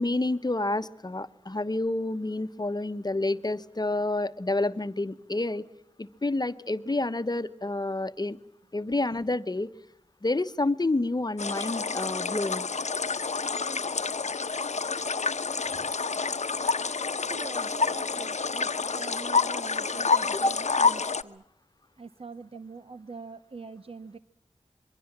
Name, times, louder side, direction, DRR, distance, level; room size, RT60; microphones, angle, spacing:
voice 1, 0.0-5.7 6.0-8.4 8.7-9.7 10.2-12.7 20.4-20.6, left 2 dB, 35° left, 13 dB, 1.1 m, -29 dB
sound 1, 11.4-21.2, left 4 dB, 80° left, 0.9 m, -28 dB
voice 2, 17.3-21.4 22.0-24.2, right 4 dB, 55° right, 12 dB, 0.9 m, -44 dB
27.0 x 23.0 x 7.5 m, 0.76 s
wide cardioid pair, 60°, 12 cm